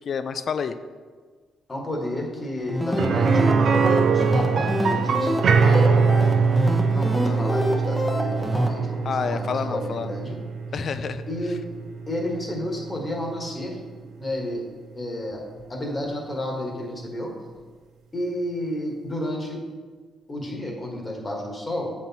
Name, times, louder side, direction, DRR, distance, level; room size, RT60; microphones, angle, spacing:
voice 1, 0.1-0.8 7.2-7.4 9.0-10.1 10.7-11.2, left 6 dB, 50° left, 11 dB, 0.4 m, -29 dB
voice 2, 1.7-6.1 6.9-10.4 11.3-11.6 12.1-13.8 14.2-14.6 14.9-15.4 15.7-17.3 18.1-19.6 20.3-21.9, left 1 dB, 20° left, 0 dB, 1.4 m, -31 dB
sound 1, 2.6-8.7, equal, ahead, 0.8 m, -27 dB
sound 2, 3.0-12.8 13.1-13.2 15.6-15.7, right 5 dB, 60° right, 0.5 m, -22 dB
7.8 x 4.4 x 4.1 m, 1.5 s
cardioid pair, 120°, 0 cm